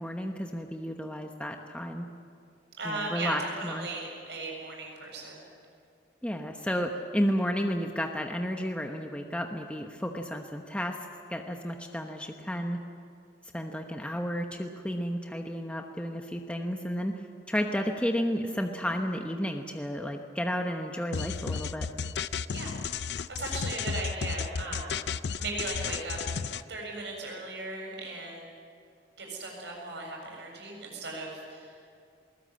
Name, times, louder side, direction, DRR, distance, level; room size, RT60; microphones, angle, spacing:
voice 1, 0.0-2.1 2.8-3.9 6.2-11.0 11.3-12.8 13.5-17.2 17.5-21.9, equal, 5° left, 3 dB, 1.0 m, -32 dB
voice 2, 2.8-5.4 22.5-22.8 23.3-25.0 25.4-26.2 26.7-28.5 29.2-31.7, right 2 dB, 80° right, 0 dB, 7.5 m, -37 dB
sound 1, 21.1-26.6, left 6 dB, 70° left, 0.5 m, -33 dB
21.0 x 20.0 x 8.6 m, 2.3 s
head